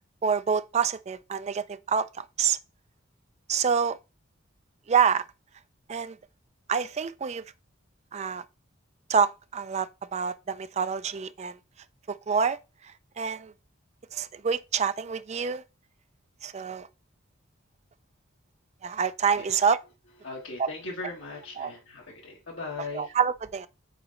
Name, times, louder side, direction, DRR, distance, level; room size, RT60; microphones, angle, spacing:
voice 1, 0.2-2.6 3.5-4.0 4.9-5.2 5.9-6.2 6.7-7.4 8.1-8.4 9.1-11.6 12.1-12.6 13.2-13.5 14.1-15.6 16.4-16.9 18.8-19.8 20.6-20.7 21.6-21.7 22.9-23.7, right 6 dB, 35° right, 0.4 m, -27 dB
voice 2, 20.2-23.1, left 3 dB, 75° left, 1.8 m, -38 dB
4.9 x 4.0 x 5.0 m
head